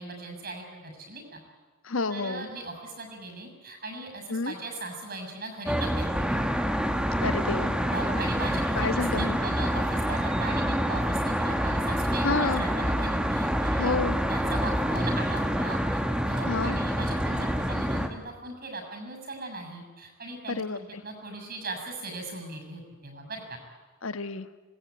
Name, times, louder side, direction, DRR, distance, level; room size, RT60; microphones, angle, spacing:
voice 1, 0.0-1.4 2.1-6.6 7.9-13.9 14.3-15.8 16.3-23.6, right 2 dB, 50° right, 5 dB, 6.8 m, -39 dB
voice 2, 1.8-2.5 4.3-4.5 7.2-7.8 8.7-9.4 12.2-12.6 13.8-14.2 16.5-16.8 20.5-21.0 24.0-24.5, left 3 dB, 85° left, 12 dB, 1.2 m, -29 dB
Traffic noise roadway noise, 5.7-18.1, equal, 5° right, 1.7 m, -27 dB
26.5 x 20.0 x 9.5 m, 1.4 s
head